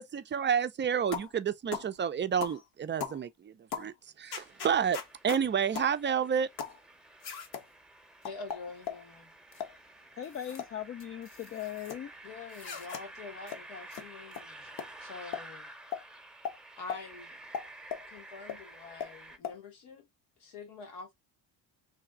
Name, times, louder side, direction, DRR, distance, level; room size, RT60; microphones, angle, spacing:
voice 1, 0.0-5.0 5.2-6.5, right 7 dB, 30° right, 0.4 m, -30 dB
sound 1, 1.1-1.3 1.7-1.9 2.4-2.6 3.0-3.2 3.7-3.9 4.3-5.4 5.7-5.9 6.6-6.8 7.2-7.6 8.2-9.0 9.5-9.7 10.2-10.7 11.0-12.0 12.5-13.0 13.5-13.6 13.9-14.0 14.3-14.4 14.8-14.9 15.3-15.5 15.9-16.0 16.4-16.6 16.9-17.0 17.5-18.1 18.5-18.6 19.0-19.1 19.4-19.6, left 7 dB, 65° left, 1.1 m, -38 dB
sound 2, 4.4-19.4, right 1 dB, ahead, 0.8 m, -51 dB
voice 2, 8.2-9.3 12.2-15.7 16.8-17.4 18.1-20.1 20.4-21.1, left 4 dB, 80° left, 1.6 m, -46 dB
voice 3, 10.2-12.1, left 10 dB, 35° left, 0.4 m, -39 dB
3.3 x 2.3 x 3.7 m
supercardioid pair, 75°, 41 cm